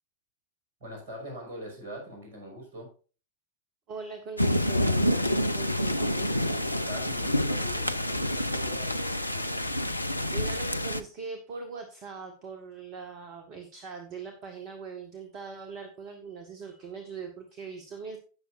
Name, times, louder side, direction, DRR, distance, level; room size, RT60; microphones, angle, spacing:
voice 1, 0.8-2.9 6.7-9.6, equal, 55° right, 1 dB, 6.1 m, -42 dB
voice 2, 3.9-6.3 10.3-18.2, right 5 dB, 40° right, 6 dB, 1.6 m, -41 dB
sound 1, 4.4-11.0, left 1 dB, 85° left, 0.5 m, -28 dB
17.5 x 6.6 x 2.6 m, 0.37 s
figure-of-eight pair, 90°, 0 cm